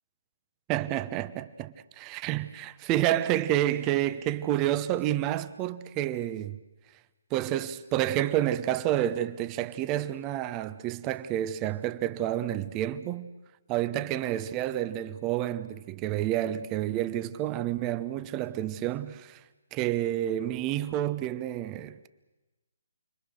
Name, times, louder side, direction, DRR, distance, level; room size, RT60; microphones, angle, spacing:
voice 1, 0.7-6.6 7.3-13.3 13.7-19.4 19.7-22.1, right 13 dB, 20° right, 0.9 m, -29 dB
29.5 x 22.5 x 6.5 m
figure-of-eight pair, 140°, 0 cm